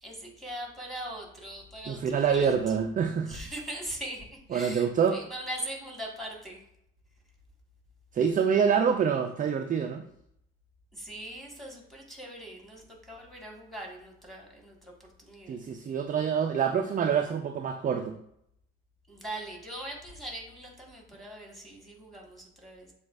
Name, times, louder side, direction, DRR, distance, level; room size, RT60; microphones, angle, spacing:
voice 1, 0.0-2.5 3.3-6.6 10.9-15.6 19.1-22.9, right 1 dB, ahead, -1 dB, 1.7 m, -41 dB
voice 2, 1.9-3.4 4.5-5.2 8.1-10.0 15.5-18.2, right 7 dB, 25° right, 5 dB, 0.4 m, -26 dB
7.2 x 2.4 x 2.5 m, 0.74 s
hypercardioid pair, 60°, 31 cm